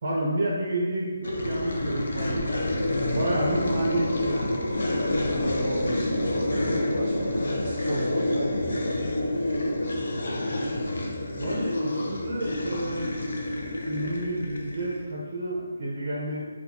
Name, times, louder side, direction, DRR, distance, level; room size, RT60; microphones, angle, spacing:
voice 1, 0.0-2.5 3.1-4.6 10.6-10.8 11.4-13.2 13.8-16.5, right 1 dB, 40° right, -5 dB, 0.7 m, -30 dB
sound 1, 1.2-15.1, left 1 dB, 60° left, 0.5 m, -28 dB
voice 2, 4.8-8.6 8.9-9.1, equal, 5° left, -18 dB, 1.2 m, -34 dB
4.3 x 2.3 x 2.8 m, 1.5 s
hypercardioid pair, 175°, 0 cm